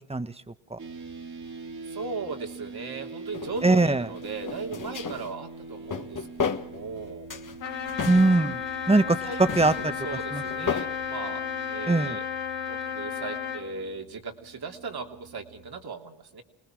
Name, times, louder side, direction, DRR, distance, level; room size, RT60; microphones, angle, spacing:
voice 1, 0.1-0.8 3.6-4.1 8.0-8.6 8.9-9.9 10.3-10.7 11.9-12.2, right 2 dB, 15° right, 11 dB, 1.5 m, -22 dB
sound 1, 0.8-15.8, right 3 dB, 40° right, 2.7 m, -44 dB
voice 2, 1.9-6.3 6.5-7.3 9.2-11.4 11.7-12.2 12.7-16.4, right 4 dB, 60° right, 3 dB, 3.1 m, -37 dB
sound 2, 3.3-3.7 4.2-5.3 5.7-7.0 7.3-8.9 9.3-10.9, left 6 dB, 45° left, 1.8 m, -34 dB
Trumpet, 7.6-13.7, left 7 dB, 90° left, 2.7 m, -33 dB
26.0 x 19.5 x 6.4 m, 0.71 s
supercardioid pair, 55°, 43 cm